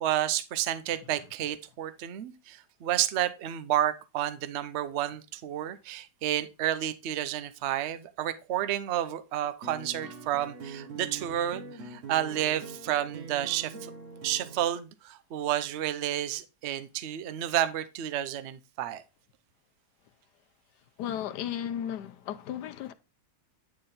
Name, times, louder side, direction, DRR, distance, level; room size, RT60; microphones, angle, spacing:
voice 1, 0.0-13.9 14.2-19.0, right 12 dB, 80° right, 0.6 m, -31 dB
sound 1, 9.6-14.7, right 4 dB, 50° right, 1.2 m, -43 dB
voice 2, 21.0-22.9, left 10 dB, 70° left, 1.2 m, -34 dB
9.5 x 3.9 x 4.0 m
omnidirectional pair, 2.0 m